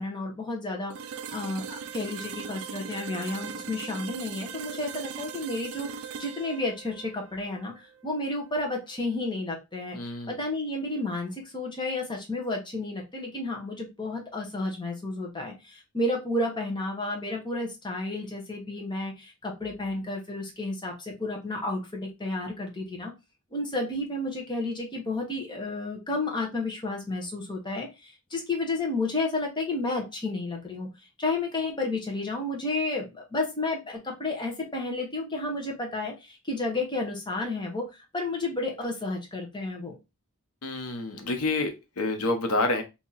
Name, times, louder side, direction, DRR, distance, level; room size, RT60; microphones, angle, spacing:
voice 1, 0.0-7.7 8.0-23.1 23.5-30.9 31.2-40.0, left 2 dB, 20° left, 0 dB, 1.0 m, -31 dB
sound 1, 0.9-8.7, right 7 dB, 65° right, 0.4 m, -40 dB
voice 2, 9.9-10.4 40.6-42.8, left 2 dB, 90° left, 6 dB, 0.8 m, -28 dB
2.9 x 2.8 x 3.9 m, 0.25 s
head